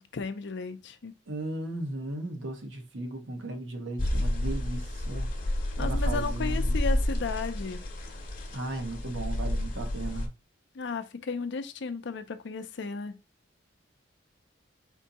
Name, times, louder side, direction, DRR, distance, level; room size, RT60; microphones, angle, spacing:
voice 1, 0.0-1.1 5.8-7.8 10.8-13.2, left 4 dB, 65° left, 0.5 m, -34 dB
voice 2, 1.3-5.3 5.8-6.8 8.5-10.3, right 2 dB, 75° right, 1.1 m, -36 dB
sound 1, 4.0-10.3, left 1 dB, 45° left, 0.9 m, -30 dB
4.4 x 2.7 x 4.0 m
head